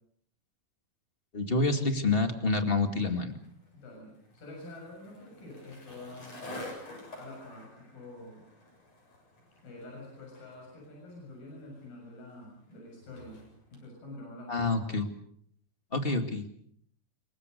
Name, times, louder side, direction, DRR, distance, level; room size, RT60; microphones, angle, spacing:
voice 1, 1.3-3.4 14.5-15.0 15.9-16.4, left 3 dB, 20° left, 7 dB, 1.7 m, -27 dB
Skateboard, 3.3-13.8, left 1 dB, 45° left, 8.5 m, -49 dB
voice 2, 3.7-6.5 7.2-8.4 9.6-13.4 13.7-14.8, left 1 dB, 75° left, -1 dB, 8.8 m, -47 dB
27.0 x 23.5 x 6.7 m, 0.66 s
omnidirectional pair, 4.0 m